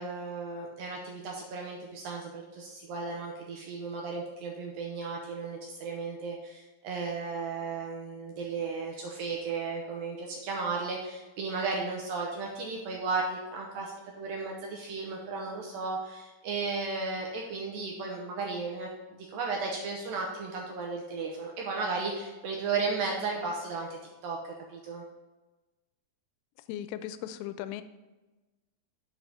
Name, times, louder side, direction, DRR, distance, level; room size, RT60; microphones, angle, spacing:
voice 1, 0.0-24.4 24.7-25.0, right 4 dB, 75° right, 0 dB, 2.4 m, -35 dB
voice 2, 26.7-27.8, left 11 dB, 85° left, 12 dB, 2.4 m, -37 dB
7.9 x 4.7 x 5.4 m, 1.1 s
omnidirectional pair, 4.5 m